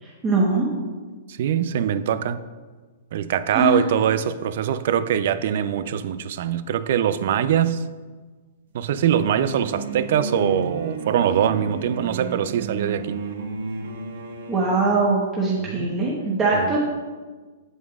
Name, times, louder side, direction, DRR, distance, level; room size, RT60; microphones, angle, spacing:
voice 1, 0.0-0.7 3.5-3.8 14.5-16.8, right 3 dB, 20° right, -5 dB, 1.1 m, -22 dB
voice 2, 1.3-2.4 3.1-7.8 8.7-13.2 15.6-15.9 16.5-16.8, right 9 dB, 60° right, 13 dB, 0.4 m, -23 dB
sound 1, 9.0-14.9, right 4 dB, 75° right, 1.1 m, -32 dB
8.0 x 7.4 x 2.4 m, 1.4 s
hypercardioid pair, 145°, 0 cm